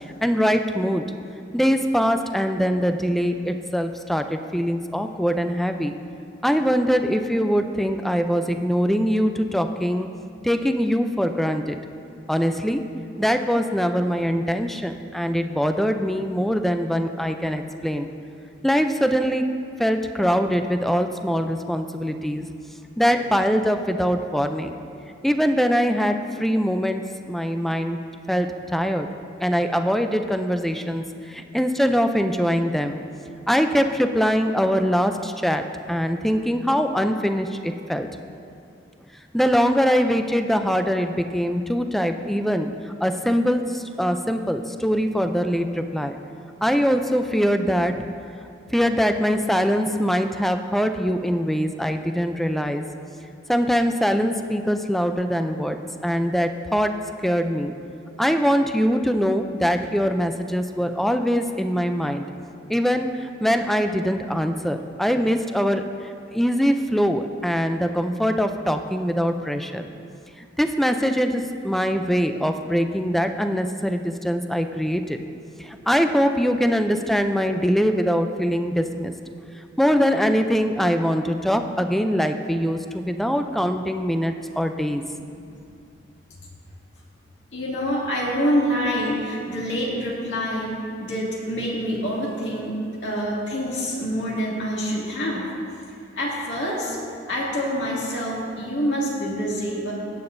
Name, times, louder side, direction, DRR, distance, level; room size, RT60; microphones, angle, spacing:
voice 1, 0.2-1.0 1.5-6.0 6.4-10.1 10.4-11.8 12.3-12.9 13.2-18.1 18.6-22.5 23.0-24.7 25.2-28.0 28.3-29.1 29.4-33.0 33.5-38.1 39.3-42.7 43.0-46.2 46.6-48.1 48.7-52.9 53.5-57.8 58.2-62.3 62.7-65.9 66.3-69.9 70.6-75.2 75.6-79.1 79.8-85.0, equal, ahead, 7 dB, 0.4 m, -23 dB
voice 2, 85.3-85.6 87.5-95.5 96.1-97.0 97.3-99.9, equal, 75° left, -5 dB, 2.3 m, -26 dB
16.5 x 8.7 x 2.6 m, 2.6 s
head